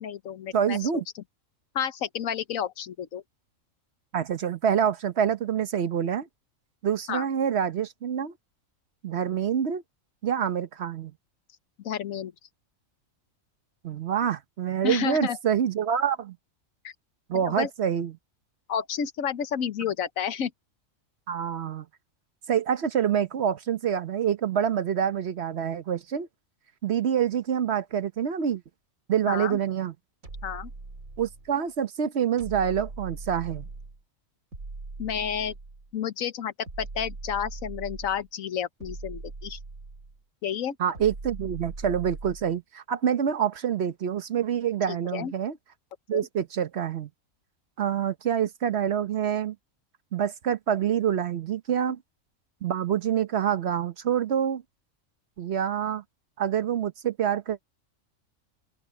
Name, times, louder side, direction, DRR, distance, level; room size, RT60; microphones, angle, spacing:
voice 1, 0.0-0.8 1.7-3.2 7.1-7.2 11.8-12.3 14.8-15.4 16.8-16.9 17.3-17.7 18.7-20.5 29.3-29.6 30.4-30.7 35.0-35.5 35.9-39.6 40.4-40.8 44.9-45.3 46.1-46.2, left 8 dB, 85° left, 1.3 m, -31 dB
voice 2, 0.5-1.0 4.1-6.3 6.8-8.3 9.0-9.8 10.2-11.1 13.8-16.4 17.3-18.2 21.3-21.9 22.5-26.3 26.8-28.6 29.1-29.9 31.2-33.7 40.8-45.6 46.1-47.1 47.8-49.5 50.1-52.0 52.6-54.6 55.4-56.0 56.4-57.6, right 8 dB, 55° right, 1.1 m, -26 dB
sound 1, 30.2-31.6 32.4-34.0 34.5-35.9 36.7-38.3 38.8-40.2 40.9-42.6, right 3 dB, 85° right, 3.5 m, -40 dB
open air
omnidirectional pair, 1.4 m